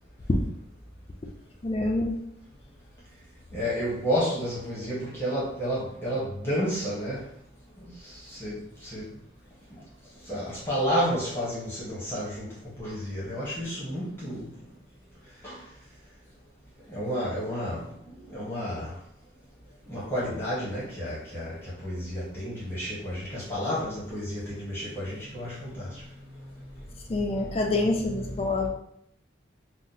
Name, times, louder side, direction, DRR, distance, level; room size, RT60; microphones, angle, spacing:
voice 1, 1.6-2.1 27.1-28.7, left 2 dB, 30° left, 2 dB, 0.4 m, -26 dB
voice 2, 3.5-7.2 8.3-9.1 10.3-12.5 12.8-14.4 15.4-15.6 16.9-17.8 18.3-18.9 19.9-21.5 21.8-25.9, equal, 15° left, -8 dB, 0.9 m, -31 dB
2.7 x 2.1 x 3.9 m, 0.71 s
head